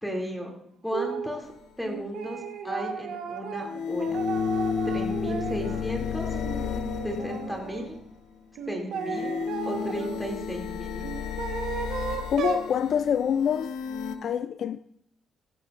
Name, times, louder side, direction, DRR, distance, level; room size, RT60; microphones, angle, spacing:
voice 1, 0.0-0.5 0.8-1.5 1.8-4.2 4.8-6.4 7.0-8.0 8.7-9.4 9.7-11.0, equal, 5° left, 2.6 m, -34 dB
sound 1, 0.9-1.4 1.8-5.9 6.3-7.9 8.6-10.2 11.0-12.7, right 7 dB, 75° right, 1.2 m, -35 dB
sound 2, 1.4-1.5 3.6-8.1 8.9-14.2, left 6 dB, 85° left, 0.8 m, -32 dB
voice 2, 12.3-13.8 14.2-14.8, left 8 dB, 60° left, 0.3 m, -25 dB
15.5 x 12.0 x 2.5 m
cardioid pair, 90°, 0 cm